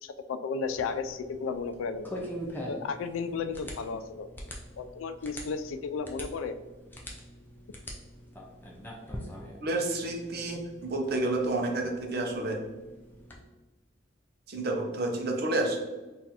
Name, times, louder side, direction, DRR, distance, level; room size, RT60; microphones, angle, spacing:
voice 1, 0.0-2.1 2.7-4.3 4.8-6.6, left 5 dB, 85° left, 10 dB, 0.3 m, -34 dB
sound 1, 0.6-13.4, equal, 10° left, 0.4 m, -44 dB
voice 2, 9.6-12.6 14.5-15.8, right 2 dB, 50° right, 2 dB, 0.6 m, -30 dB
3.9 x 2.5 x 2.8 m, 1.2 s
head